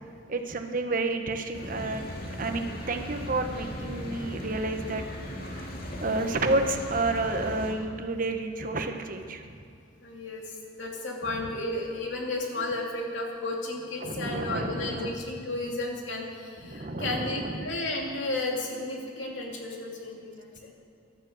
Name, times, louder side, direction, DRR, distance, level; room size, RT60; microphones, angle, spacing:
voice 1, 0.3-2.0 2.4-5.0 6.0-9.5 14.0-15.2 16.7-17.7, right 2 dB, 45° right, 6 dB, 1.1 m, -30 dB
sound 1, 1.5-7.7, equal, 50° left, 2.2 m, -38 dB
voice 2, 10.0-20.7, left 2 dB, 70° left, 0 dB, 2.7 m, -33 dB
12.5 x 12.0 x 7.9 m, 2.5 s
head